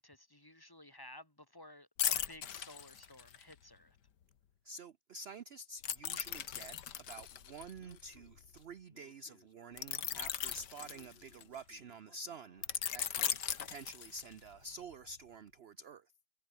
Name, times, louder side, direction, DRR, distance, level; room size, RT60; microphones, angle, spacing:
voice 1, 0.0-4.0, left 1 dB, 10° left, 3.8 m, -55 dB
sound 1, 2.0-3.5 5.8-8.6 9.8-11.6 12.6-14.5 14.9-15.1, left 9 dB, 85° left, 1.9 m, -38 dB
voice 2, 4.6-6.8 7.1-16.1, right 3 dB, 50° right, 0.8 m, -49 dB
Speech, 7.8-13.0, left 2 dB, 35° left, 5.4 m, -66 dB
omnidirectional pair, 1.8 m